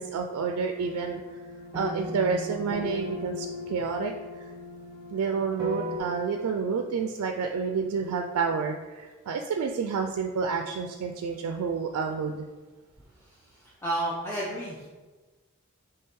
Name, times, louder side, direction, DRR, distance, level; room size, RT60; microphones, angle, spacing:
voice 1, 0.0-1.4 1.7-4.1 5.1-12.5, right 5 dB, 85° right, 4 dB, 0.3 m, -29 dB
sound 1, 0.8-6.0, left 2 dB, 20° right, 0.8 m, -37 dB
voice 2, 13.2-14.9, right 1 dB, 10° left, -6 dB, 0.5 m, -32 dB
3.6 x 3.3 x 4.3 m, 1.3 s
head